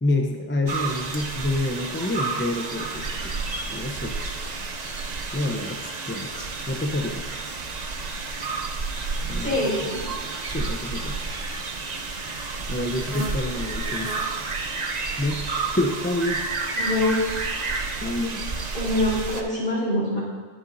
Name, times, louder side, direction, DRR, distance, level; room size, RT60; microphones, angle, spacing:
voice 1, 0.0-3.4 3.7-4.2 5.3-7.4 9.2-9.6 10.5-11.2 12.7-14.1 15.2-15.5 15.7-16.5 18.0-18.7, left 2 dB, 15° left, 2 dB, 0.6 m, -28 dB
sound 1, 0.7-19.4, right 3 dB, 40° right, 0.8 m, -30 dB
voice 2, 9.4-10.1 16.8-17.2 18.7-20.2, left 1 dB, 45° left, -6 dB, 4.1 m, -24 dB
20.5 x 7.4 x 2.7 m, 1.5 s
omnidirectional pair, 1.1 m